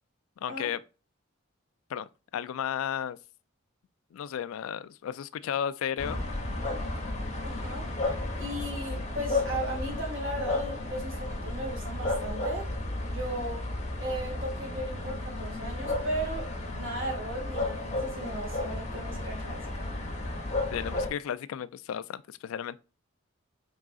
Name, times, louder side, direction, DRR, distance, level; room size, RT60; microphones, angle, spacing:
voice 1, 0.4-0.8 1.9-2.1 2.3-3.2 4.1-6.3 20.7-22.8, left 9 dB, 80° left, 0.3 m, -33 dB
sound 1, 6.0-21.1, left 2 dB, 35° left, 0.9 m, -33 dB
voice 2, 7.4-12.7 13.1-13.7 14.0-19.7, right 1 dB, 70° right, 2.1 m, -36 dB
4.7 x 3.6 x 2.4 m
head